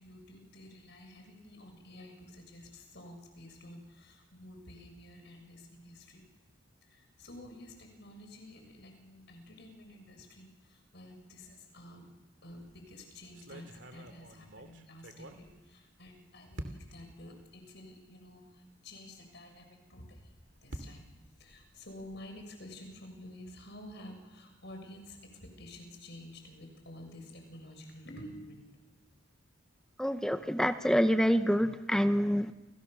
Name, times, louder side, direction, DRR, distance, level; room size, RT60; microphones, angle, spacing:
voice 1, 0.0-6.2 6.9-12.1 12.4-20.3 20.6-21.1 21.4-29.1, left 1 dB, 60° left, 4 dB, 7.1 m, -50 dB
sound 1, 12.5-12.8 13.3-16.1 16.6-17.1 17.8-17.9 18.3-18.4 20.0-22.3, right 1 dB, 65° right, 2.8 m, -48 dB
voice 2, 30.0-32.5, equal, 5° left, 9 dB, 0.9 m, -27 dB
29.5 x 29.0 x 7.0 m, 1.1 s
head